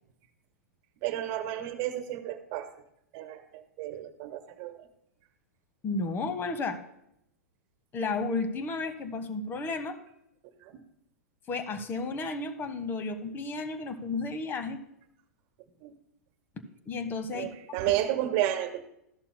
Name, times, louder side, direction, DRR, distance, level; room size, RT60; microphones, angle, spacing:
voice 1, 1.0-2.7 3.1-4.9 10.6-10.8 15.8-15.9 17.3-18.8, right 12 dB, 45° right, 8 dB, 1.3 m, -32 dB
voice 2, 5.8-6.8 7.9-10.0 11.5-14.8 16.9-17.5, left 3 dB, 25° left, 10 dB, 1.2 m, -32 dB
14.0 x 11.5 x 2.2 m, 0.79 s
figure-of-eight pair, 105°, 9 cm